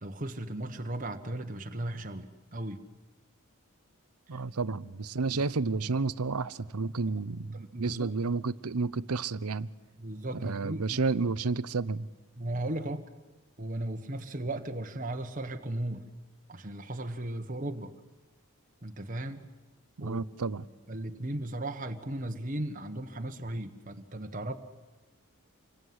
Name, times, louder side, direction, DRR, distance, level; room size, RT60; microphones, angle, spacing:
voice 1, 0.0-2.8 4.3-4.7 5.3-5.9 7.5-8.1 10.0-11.0 12.4-13.1 13.6-16.0 16.5-17.9 18.8-19.5 20.0-20.2 20.9-24.6, right 1 dB, 35° right, 1.4 m, -36 dB
voice 2, 4.3-9.7 10.3-12.1 20.0-20.6, right 4 dB, 90° right, 0.8 m, -31 dB
27.5 x 22.0 x 9.6 m
head